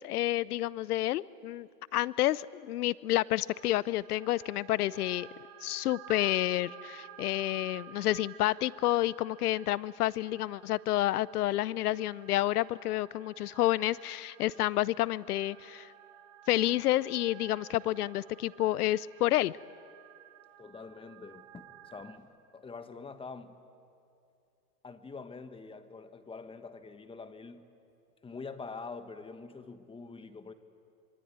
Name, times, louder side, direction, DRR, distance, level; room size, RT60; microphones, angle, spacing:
voice 1, 0.0-5.3 5.6-15.9 16.5-19.6, left 15 dB, 75° left, 21 dB, 0.7 m, -29 dB
sound 1, 3.5-22.2, right 11 dB, 70° right, 2.9 m, -53 dB
voice 2, 20.6-23.6 24.8-27.6 28.2-30.5, left 4 dB, 10° left, 9 dB, 1.5 m, -45 dB
26.0 x 24.5 x 9.5 m, 2.6 s
hypercardioid pair, 120°, 46 cm